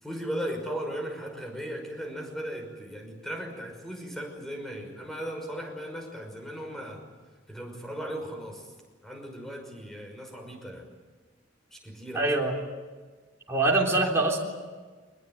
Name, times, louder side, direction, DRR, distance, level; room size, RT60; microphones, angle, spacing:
voice 1, 0.0-7.0 7.5-8.7 9.0-10.8 11.7-12.3, equal, ahead, 2 dB, 5.6 m, -37 dB
voice 2, 12.1-12.5 13.5-14.4, right 2 dB, 15° right, -3 dB, 3.5 m, -24 dB
24.0 x 21.0 x 9.6 m, 1.4 s
head